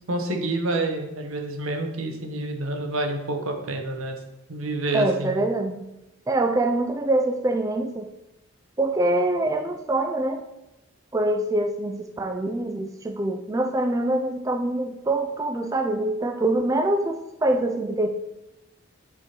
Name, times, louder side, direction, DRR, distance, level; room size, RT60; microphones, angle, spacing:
voice 1, 0.1-4.2 4.5-5.3, right 2 dB, 85° right, 4 dB, 1.0 m, -28 dB
voice 2, 4.9-5.8 6.3-8.1 8.8-10.4 11.1-18.1, right 2 dB, 15° right, 5 dB, 0.3 m, -24 dB
8.0 x 3.7 x 4.3 m, 0.95 s
head